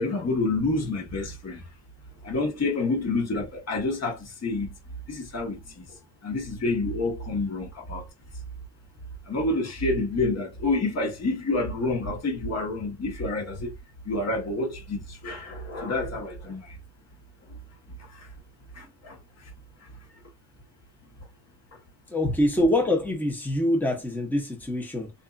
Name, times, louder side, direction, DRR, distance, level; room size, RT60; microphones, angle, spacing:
voice 1, 0.0-1.6 2.2-4.7 5.1-5.9 6.2-8.0 9.3-13.7 14.0-16.8 17.5-17.6 18.1-18.3 18.7-19.2, left 2 dB, 35° left, 1.1 m, -28 dB
voice 2, 22.1-25.1, left 1 dB, 5° left, 0.9 m, -25 dB
2.6 x 2.6 x 2.4 m
cardioid pair, 95°, 47 cm